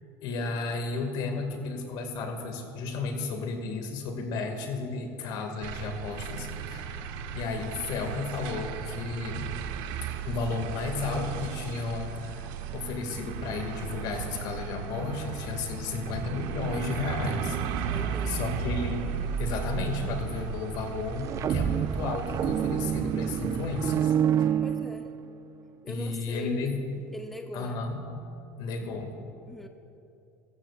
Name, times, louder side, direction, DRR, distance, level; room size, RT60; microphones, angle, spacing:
voice 1, 0.2-9.5 10.3-18.0 18.3-19.1 19.4-24.1 24.4-24.5 25.9-26.8 27.5-28.0 28.6-29.2, left 3 dB, 60° left, 4 dB, 2.1 m, -33 dB
sound 1, 5.6-24.0, right 7 dB, 65° right, 0.9 m, -35 dB
voice 2, 17.8-18.4 24.6-25.1 25.8-26.7 27.1-27.8 29.5-29.7, left 1 dB, ahead, 5 dB, 0.7 m, -41 dB
sound 2, 21.1-25.4, right 9 dB, 40° right, 0.4 m, -27 dB
19.5 x 14.5 x 2.5 m, 2.8 s
hypercardioid pair, 90°, 8 cm